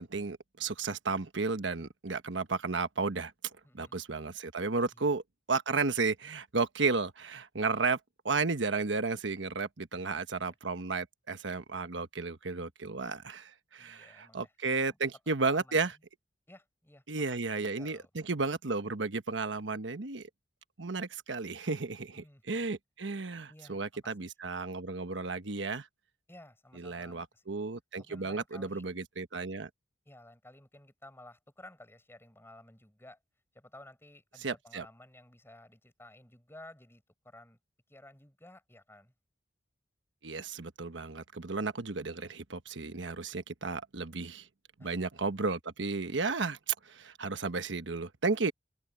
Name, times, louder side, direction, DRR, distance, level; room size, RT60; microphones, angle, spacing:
voice 1, 0.0-3.3 3.7-5.2 5.5-8.0 8.2-15.9 17.1-20.3 20.8-25.9 26.8-29.7 34.4-34.9 40.2-44.5 44.8-48.5, right 4 dB, 80° right, 1.2 m, -33 dB
voice 2, 3.6-4.0 4.9-5.1 9.9-10.6 13.8-15.0 15.4-15.9 16.5-18.1 22.1-22.7 23.5-24.3 26.3-27.5 28.0-28.8 30.1-33.2 33.5-37.6 37.9-39.1 44.8-45.0, left 1 dB, 15° left, 5.2 m, -55 dB
head